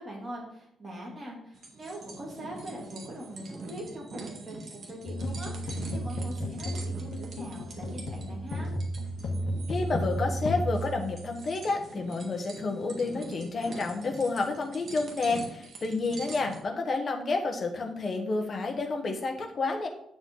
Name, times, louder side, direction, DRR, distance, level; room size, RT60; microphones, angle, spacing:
voice 1, 0.0-8.7, equal, 20° right, -3 dB, 3.0 m, -42 dB
sound 1, 1.5-16.6, right 3 dB, 45° right, 1.8 m, -44 dB
sound 2, 5.0-11.7, equal, 55° left, 1.5 m, -33 dB
voice 2, 9.7-19.9, left 3 dB, 30° left, 3 dB, 1.4 m, -30 dB
9.2 x 7.0 x 3.9 m, 0.71 s
wide cardioid pair, 175°, 0 cm